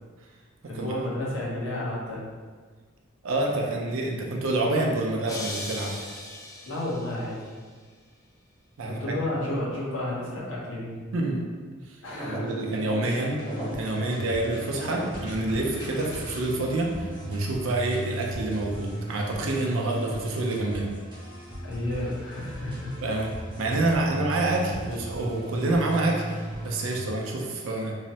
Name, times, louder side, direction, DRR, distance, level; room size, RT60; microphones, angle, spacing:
voice 1, 0.6-2.3 6.7-7.5 8.9-11.1 12.0-12.6 21.6-23.0 23.9-24.1, left 1 dB, 60° left, -6 dB, 0.8 m, -32 dB
voice 2, 3.2-6.0 8.8-9.0 11.1-11.4 12.2-13.4 13.7-20.9 23.0-23.3 23.6-27.9, right 2 dB, 65° right, 0 dB, 0.4 m, -27 dB
sound 1, 5.3-7.4, left 1 dB, 15° left, 0.3 m, -38 dB
sound 2, 12.0-16.7, equal, 40° left, 1.0 m, -38 dB
sound 3, 13.4-27.1, right 1 dB, 20° right, 0.7 m, -37 dB
3.0 x 2.0 x 2.7 m, 1.5 s
head